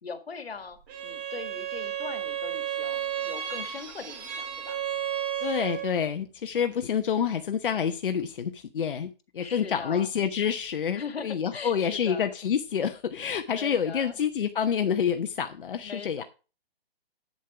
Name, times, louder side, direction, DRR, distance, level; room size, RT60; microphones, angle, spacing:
voice 1, 0.0-4.8 9.4-10.1 11.0-12.3 13.6-14.2 15.8-16.2, left 5 dB, 85° left, 10 dB, 1.8 m, -40 dB
Bowed string instrument, 0.9-6.1, right 9 dB, 15° right, 0.7 m, -33 dB
voice 2, 5.4-16.2, left 7 dB, 60° left, 8 dB, 0.9 m, -28 dB
8.4 x 7.3 x 4.8 m, 0.33 s
hypercardioid pair, 155°, 30 cm